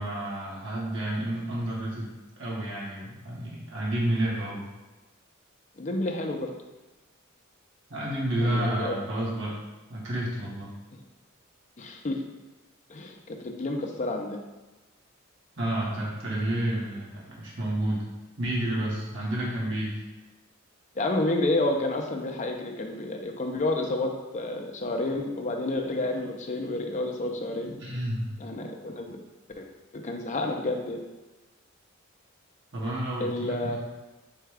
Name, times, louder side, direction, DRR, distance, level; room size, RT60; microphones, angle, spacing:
voice 1, 0.0-2.1 2.4-4.6 7.9-9.5 9.9-10.7 15.6-18.0 18.4-20.0 27.6-28.3 32.7-33.8, right 1 dB, 60° right, -6 dB, 1.1 m, -30 dB
voice 2, 5.8-6.5 8.4-9.0 11.8-12.2 12.9-14.4 21.0-27.7 28.4-29.2 29.6-29.7 29.9-31.0 33.2-33.8, left 2 dB, 35° left, 2 dB, 0.5 m, -30 dB
4.7 x 2.3 x 4.8 m, 1.1 s
head